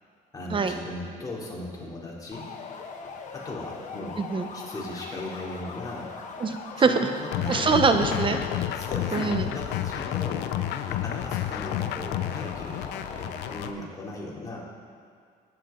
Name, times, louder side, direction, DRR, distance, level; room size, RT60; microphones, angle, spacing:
voice 1, 0.3-2.5 3.3-4.2 4.5-6.1 6.8-7.8 8.7-10.5 10.9-14.6, left 2 dB, 20° left, -4 dB, 3.1 m, -37 dB
sound 1, 2.3-13.7, left 5 dB, 45° left, 1.2 m, -41 dB
voice 2, 4.2-4.5 6.4-7.1 7.5-8.4 9.1-9.5, right 4 dB, 30° right, 7 dB, 0.9 m, -23 dB
sound 2, 7.3-13.7, left 12 dB, 80° left, 0.6 m, -30 dB
20.0 x 8.3 x 3.9 m, 2.2 s
cardioid pair, 110°, 17 cm